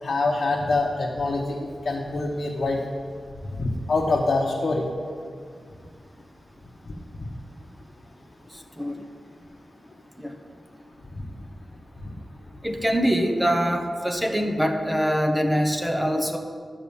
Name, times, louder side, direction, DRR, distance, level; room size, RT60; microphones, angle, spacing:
voice 1, 0.0-2.8 3.6-4.9 11.1-11.2 12.0-12.1, left 3 dB, 55° left, -3 dB, 1.0 m, -25 dB
voice 2, 12.6-16.4, equal, 5° right, 4 dB, 0.8 m, -23 dB
11.0 x 6.0 x 7.0 m, 2.1 s
wide cardioid pair, 145°, 0 cm